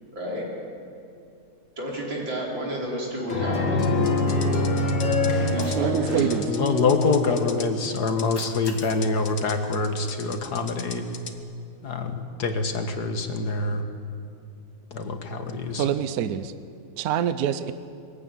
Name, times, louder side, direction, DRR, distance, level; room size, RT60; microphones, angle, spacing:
voice 1, 0.1-0.5 1.8-3.9 5.4-6.2, equal, 90° right, -5 dB, 5.9 m, -31 dB
sound 1, 3.3-7.5, left 2 dB, 80° left, 3.0 m, -25 dB
sound 2, 3.8-11.4, left 6 dB, 45° left, 1.4 m, -40 dB
Cat, 5.5-5.9 8.1-10.5, equal, 15° left, 2.1 m, -43 dB
voice 2, 5.7-6.4 15.8-16.5 17.0-17.7, right 10 dB, 65° right, 12 dB, 1.0 m, -25 dB
voice 3, 6.5-11.0 11.8-13.8 14.9-15.8, left 3 dB, 60° left, 6 dB, 1.9 m, -25 dB
22.5 x 15.5 x 9.2 m, 2.5 s
omnidirectional pair, 2.0 m